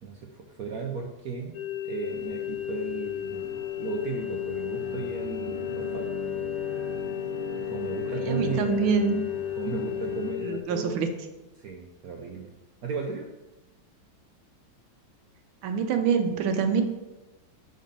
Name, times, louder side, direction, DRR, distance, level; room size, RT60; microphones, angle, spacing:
voice 1, 0.0-1.6 1.8-6.1 7.7-8.9 9.6-11.0 11.6-12.5 12.8-13.3, right 5 dB, 70° right, 1 dB, 0.8 m, -35 dB
sound 1, 1.5-10.6, left 13 dB, 80° left, 1.4 m, -33 dB
sound 2, 2.0-10.3, right 2 dB, 30° left, 2.7 m, -42 dB
sound 3, 3.7-11.5, right 1 dB, 50° left, 1.1 m, -48 dB
voice 2, 8.1-9.2 10.4-11.1 15.6-16.8, right 6 dB, 90° right, 6 dB, 1.5 m, -25 dB
5.2 x 4.0 x 5.3 m, 1.0 s
omnidirectional pair, 2.2 m